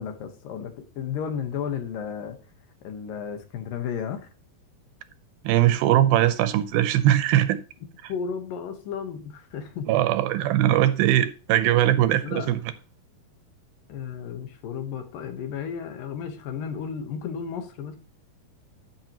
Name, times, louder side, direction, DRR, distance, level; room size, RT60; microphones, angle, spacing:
voice 1, 0.0-2.4 2.8-4.3 8.1-10.1 12.2-12.5 13.9-18.0, left 7 dB, 70° left, 2.7 m, -33 dB
voice 2, 5.4-7.6 9.9-12.6, right 13 dB, 80° right, 2.5 m, -20 dB
13.0 x 6.0 x 3.0 m
omnidirectional pair, 4.4 m